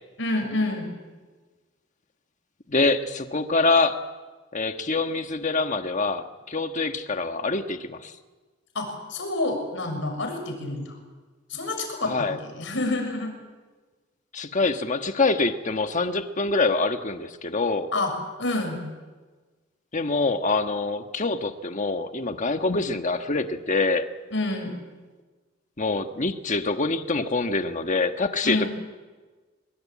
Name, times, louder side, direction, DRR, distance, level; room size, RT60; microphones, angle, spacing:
voice 1, 0.2-0.9 8.7-11.0 11.5-13.3 17.9-18.1 18.4-18.8 24.3-24.8 28.4-28.7, left 2 dB, 70° left, 4 dB, 6.8 m, -28 dB
voice 2, 2.7-4.0 4.5-8.1 12.1-12.4 14.3-17.9 19.9-24.1 25.8-28.7, left 3 dB, 40° left, 7 dB, 1.5 m, -25 dB
24.0 x 23.0 x 8.7 m, 1.3 s
head